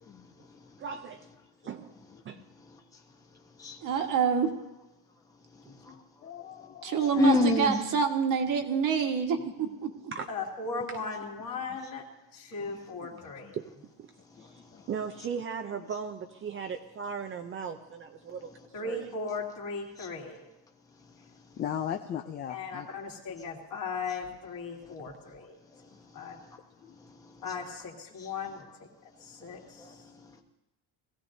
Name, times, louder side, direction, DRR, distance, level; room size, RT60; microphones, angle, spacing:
voice 1, 0.1-0.8 2.6-2.8 3.6-3.9 5.5-5.9 7.2-7.8 14.3-14.9 20.0-20.1 21.1-21.6 24.8-24.9 25.4-26.6 26.9-27.5 28.2-28.3 29.4-30.4, left 3 dB, 10° left, 2 dB, 0.9 m, -33 dB
voice 2, 0.8-1.3 1.6-1.9 2.2-2.4 10.1-10.3 13.5-13.6 14.0-14.1 14.4-14.5 14.9-18.5 18.8-19.1, right 6 dB, 30° right, 5 dB, 0.6 m, -37 dB
voice 3, 3.8-4.5 6.8-9.9, right 6 dB, 50° right, 4 dB, 1.5 m, -27 dB
voice 4, 5.6-6.0 7.1-7.4 10.3-12.0 12.3-13.6 18.7-20.5 22.5-25.5 26.1-26.4 27.4-28.9 29.2-30.0, left 4 dB, 50° left, -1 dB, 2.8 m, -37 dB
voice 5, 6.2-7.1 7.5-7.6 13.0-13.5 14.4-14.8 16.6-16.7 21.6-22.9 26.8-27.0, left 9 dB, 25° left, 7 dB, 0.4 m, -39 dB
21.5 x 15.5 x 2.7 m, 0.97 s
cardioid pair, 165°, 42 cm